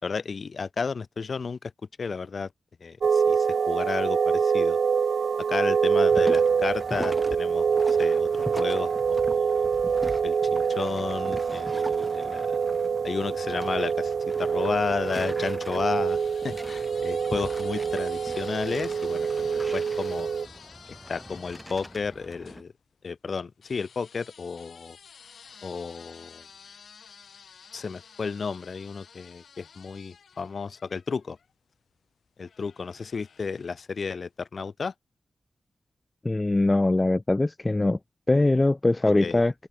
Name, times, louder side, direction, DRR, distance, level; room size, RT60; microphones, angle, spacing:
voice 1, 0.0-1.7 2.0-2.5 2.8-4.8 5.5-7.7 8.0-9.7 10.2-12.6 13.0-14.1 14.4-20.3 20.9-22.7 23.0-25.0 25.6-26.5 27.7-31.4 32.4-34.9 39.2-39.4, left 5 dB, 55° left, 1.9 m, -32 dB
sound 1, 3.0-20.5, right 6 dB, 75° right, 0.8 m, -25 dB
sound 2, 6.1-22.6, equal, ahead, 3.1 m, -41 dB
sound 3, 15.9-22.6 23.6-31.5 32.4-34.0, left 6 dB, 85° left, 2.4 m, -51 dB
voice 2, 36.2-38.0 38.3-39.5, left 2 dB, 20° left, 0.6 m, -22 dB
wide cardioid pair, 135°, 0 cm